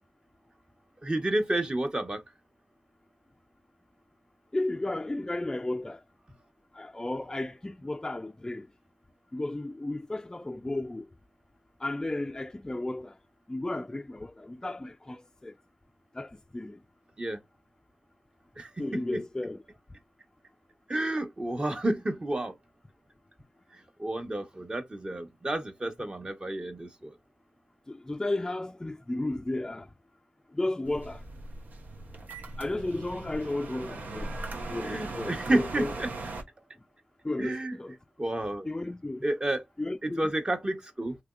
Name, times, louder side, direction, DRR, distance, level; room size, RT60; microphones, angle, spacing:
voice 1, 1.0-2.2 17.2-17.4 18.6-19.2 20.9-22.5 23.7-27.1 34.8-36.1 37.4-37.7 38.2-38.7 39.2-39.6 40.0-41.2, right 1 dB, 35° right, 1.0 m, -31 dB
voice 2, 4.5-6.0 6.7-8.7 9.3-11.1 11.8-13.1 13.5-15.5 16.1-16.8 18.8-19.6 27.9-29.9 30.5-31.2 32.6-34.3 34.7-35.9 37.2-38.0 38.6-39.2 39.8-40.3, left 2 dB, 20° left, 0.3 m, -33 dB
sound 1, 30.9-36.4, right 2 dB, 80° right, 0.8 m, -39 dB
3.4 x 2.9 x 2.4 m
cardioid pair, 45°, 3 cm